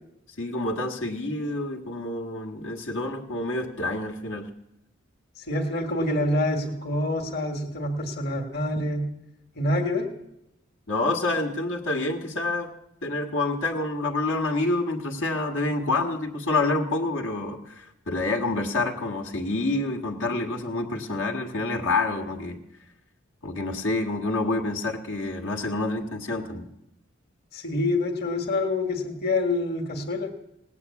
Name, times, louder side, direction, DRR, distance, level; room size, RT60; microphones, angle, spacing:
voice 1, 0.4-4.5 10.9-12.7 13.0-22.6 23.4-26.7, left 2 dB, 75° left, 1 dB, 1.7 m, -28 dB
voice 2, 5.4-9.1 9.6-10.1 27.5-30.3, left 2 dB, 55° left, 3 dB, 1.8 m, -26 dB
18.5 x 8.4 x 8.4 m, 0.84 s
head